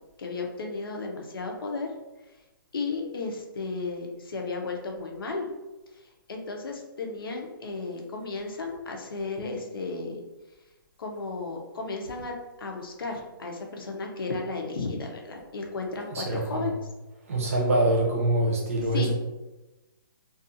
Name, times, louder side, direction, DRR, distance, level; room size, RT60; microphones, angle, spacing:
voice 1, 0.2-1.9 2.7-5.5 5.9-10.2 11.0-12.3 12.6-16.7 18.9-19.1, left 3 dB, 80° left, 2 dB, 0.6 m, -34 dB
voice 2, 16.1-16.7 17.2-19.1, right 1 dB, 40° right, -1 dB, 0.6 m, -25 dB
2.5 x 2.3 x 2.6 m, 1.1 s
hypercardioid pair, 170°, 12 cm